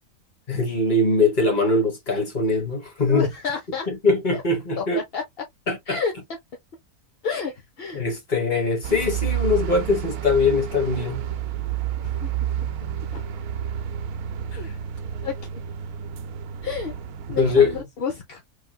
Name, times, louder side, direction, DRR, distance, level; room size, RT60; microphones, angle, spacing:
voice 1, 0.5-3.3 3.9-5.0 5.7-6.0 7.9-11.3 14.5-14.7 17.4-17.7, left 3 dB, 35° left, 1.4 m, -22 dB
voice 2, 3.0-3.9 4.3-4.4 4.8-5.2 5.9-6.1 7.2-8.0 12.0-12.3 13.1-13.3 14.5-14.7 15.2-15.4 16.6-16.9 17.3-18.4, left 5 dB, 50° left, 0.8 m, -30 dB
sound 1, 8.8-17.8, right 10 dB, 90° right, 1.1 m, -30 dB
3.3 x 3.3 x 2.2 m
omnidirectional pair, 1.5 m